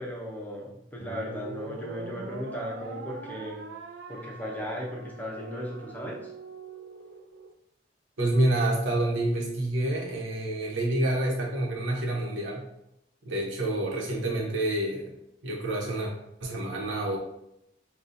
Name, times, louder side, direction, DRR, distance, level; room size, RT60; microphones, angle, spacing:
voice 1, 0.0-3.6 4.1-6.3, equal, 10° left, -2 dB, 0.6 m, -36 dB
sound 1, 1.0-7.5, right 4 dB, 65° right, 0.4 m, -43 dB
voice 2, 8.2-12.6 13.2-15.1 15.4-16.1 16.4-17.2, right 1 dB, 85° right, -2 dB, 1.0 m, -28 dB
5.2 x 2.4 x 2.7 m, 0.80 s
head